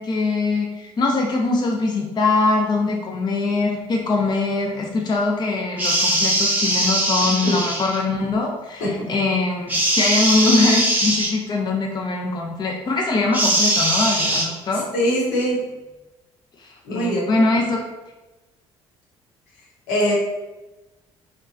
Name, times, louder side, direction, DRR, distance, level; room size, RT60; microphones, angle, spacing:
voice 1, 0.0-14.9 16.6-17.8, left 3 dB, 35° left, 0 dB, 0.5 m, -22 dB
sound 1, 5.8-8.0 9.7-11.3 13.3-14.5, right 1 dB, 10° right, 0.8 m, -20 dB
voice 2, 7.2-7.6 8.8-9.1 14.9-15.6 16.9-17.2 19.9-20.1, equal, 80° left, -4 dB, 0.9 m, -22 dB
3.0 x 2.2 x 2.5 m, 1.1 s
hypercardioid pair, 55°, 13 cm